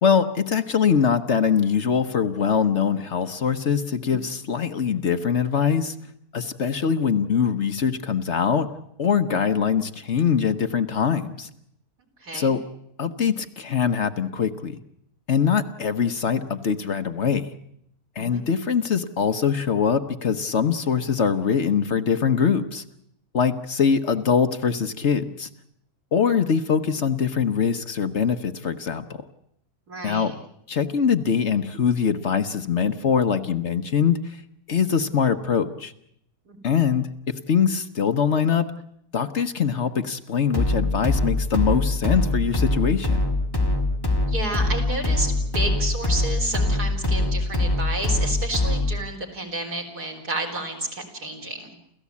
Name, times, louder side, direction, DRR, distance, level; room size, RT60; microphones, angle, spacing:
voice 1, 0.0-5.9 6.3-8.7 9.0-11.5 12.3-12.6 13.0-14.8 15.3-17.5 18.2-22.8 23.3-25.5 26.1-29.2 30.0-30.3 30.7-34.4 34.7-35.9 36.6-38.7 39.1-43.2, left 6 dB, 50° left, 9 dB, 1.2 m, -23 dB
voice 2, 12.2-12.5 18.2-18.4 29.9-30.3 36.5-36.6 44.3-51.7, right 2 dB, 85° right, 2 dB, 4.6 m, -31 dB
sound 1, 40.5-49.0, left 2 dB, 15° left, 2.2 m, -23 dB
29.5 x 14.5 x 8.4 m, 0.73 s
omnidirectional pair, 1.6 m